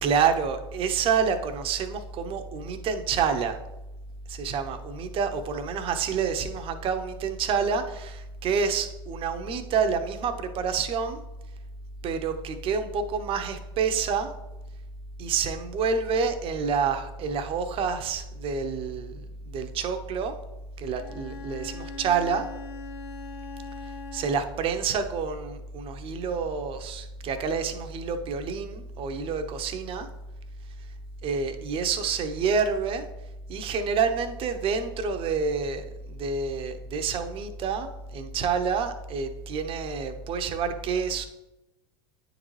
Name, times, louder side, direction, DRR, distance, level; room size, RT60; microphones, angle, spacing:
voice 1, 0.0-3.6 4.3-11.2 12.0-14.3 15.2-20.4 20.8-22.5 24.1-30.1 31.2-33.1 33.5-41.3, right 6 dB, 45° right, 8 dB, 0.8 m, -28 dB
Bowed string instrument, 20.9-24.8, left 5 dB, 85° left, 0.8 m, -41 dB
9.4 x 3.9 x 3.2 m, 0.97 s
hypercardioid pair, 90°, 13 cm